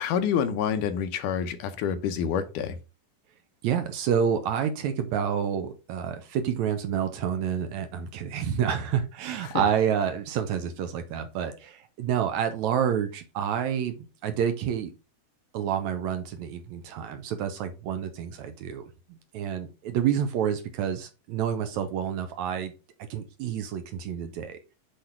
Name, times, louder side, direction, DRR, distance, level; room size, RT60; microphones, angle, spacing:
voice 1, 0.0-2.8 9.5-9.6, left 8 dB, 75° left, 8 dB, 2.2 m, -27 dB
voice 2, 3.6-14.0 14.2-14.9 15.5-22.7 23.1-24.6, right 8 dB, 75° right, 8 dB, 1.8 m, -28 dB
7.9 x 3.4 x 4.4 m, 0.31 s
omnidirectional pair, 3.9 m